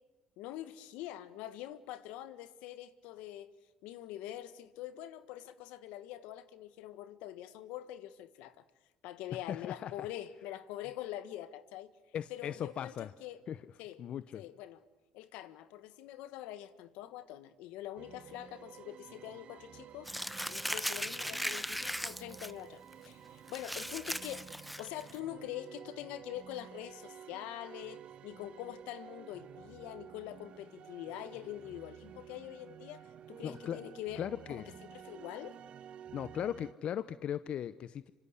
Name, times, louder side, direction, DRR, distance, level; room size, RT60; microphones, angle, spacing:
voice 1, 0.4-3.5 3.8-8.6 9.0-11.9 12.3-13.4 13.8-14.0 14.3-14.8 15.1-20.1 20.5-24.5 24.8-35.6, left 13 dB, 80° left, 1.5 m, -44 dB
voice 2, 9.5-10.1 12.1-13.1 13.5-13.6 14.0-14.4 33.4-33.8 34.2-34.6 36.1-38.1, left 9 dB, 60° left, 0.8 m, -38 dB
sound 1, 18.0-36.7, right 9 dB, 60° right, 1.1 m, -52 dB
Crumpling crinkling, 20.1-22.5 22.9-23.1 23.5-25.2, equal, ahead, 1.0 m, -38 dB
26.0 x 25.5 x 8.3 m
supercardioid pair, 75°, 2 cm